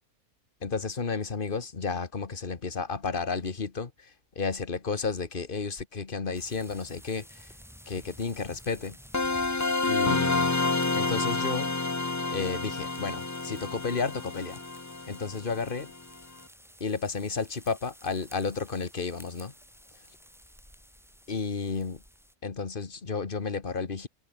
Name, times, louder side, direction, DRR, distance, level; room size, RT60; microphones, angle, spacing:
voice 1, 0.6-7.5 7.9-9.0 9.9-10.6 10.9-11.7 12.3-14.6 15.1-15.9 16.8-19.5 21.3-22.0 22.4-24.1, left 4 dB, 40° left, 1.7 m, -32 dB
sound 1, 6.3-22.3, equal, ahead, 7.0 m, -53 dB
sound 2, 9.1-15.8, left 3 dB, 20° left, 0.5 m, -29 dB
omnidirectional pair, 1.5 m